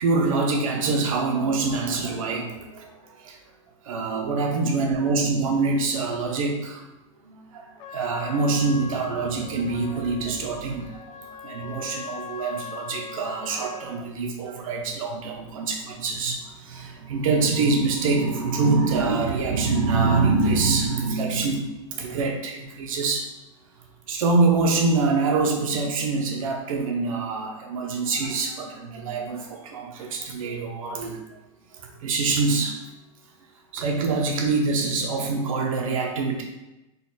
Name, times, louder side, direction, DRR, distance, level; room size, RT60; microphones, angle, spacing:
voice 1, 0.0-3.4 3.8-6.8 7.2-7.7 7.9-23.3 24.1-31.2 31.8-32.8 33.7-36.4, right 3 dB, 80° right, 1 dB, 1.0 m, -25 dB
Trumpet, 7.8-14.0, left 6 dB, 25° left, 0.4 m, -40 dB
4.1 x 2.5 x 4.1 m, 0.98 s
supercardioid pair, 165°, 17 cm